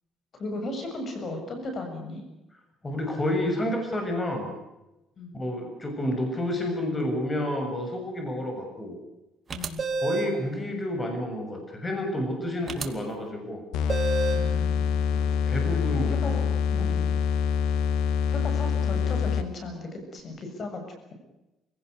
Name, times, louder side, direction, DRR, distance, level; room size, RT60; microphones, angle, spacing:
voice 1, 0.4-2.2 5.2-5.4 9.5-9.8 12.4-12.6 16.1-16.3 16.7-17.1 18.3-20.8, left 2 dB, 45° left, 5 dB, 7.0 m, -36 dB
voice 2, 2.8-4.5 5.3-9.0 9.9-13.6 15.1-16.4 16.8-17.1, left 1 dB, 20° left, 4 dB, 6.7 m, -30 dB
sound 1, 9.5-10.4 12.7-12.9 13.9-14.5, right 3 dB, 35° right, 2.6 m, -28 dB
sound 2, 13.7-19.6, left 7 dB, 90° left, 1.7 m, -25 dB
28.5 x 17.5 x 8.2 m, 0.98 s
cardioid pair, 115°, 0 cm